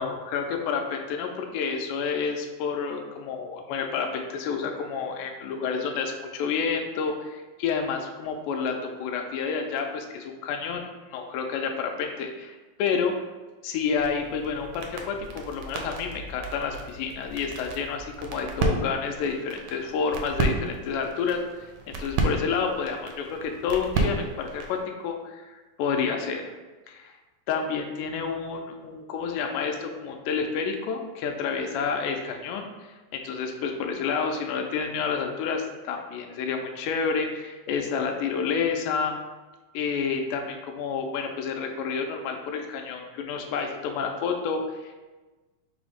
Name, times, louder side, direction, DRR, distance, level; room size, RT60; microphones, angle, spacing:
voice 1, 0.0-13.1 13.6-21.4 21.9-26.5 26.9-27.1 27.5-39.1 39.7-44.9, left 5 dB, 85° left, 3 dB, 2.1 m, -29 dB
sound 1, 14.0-24.8, right 3 dB, 80° right, 1.7 m, -32 dB
5.3 x 2.0 x 4.8 m, 1.2 s
omnidirectional pair, 3.6 m